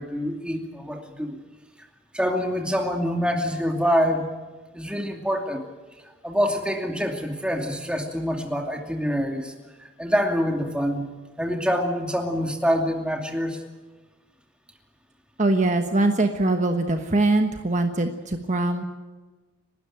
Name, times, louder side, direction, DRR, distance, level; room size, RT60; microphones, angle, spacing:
voice 1, 0.0-1.4 2.1-4.3 4.7-5.6 6.2-9.5 9.8-13.6, equal, 5° right, 3 dB, 2.5 m, -26 dB
voice 2, 15.4-18.8, right 2 dB, 40° right, 6 dB, 1.3 m, -22 dB
30.0 x 12.5 x 9.0 m, 1.3 s
head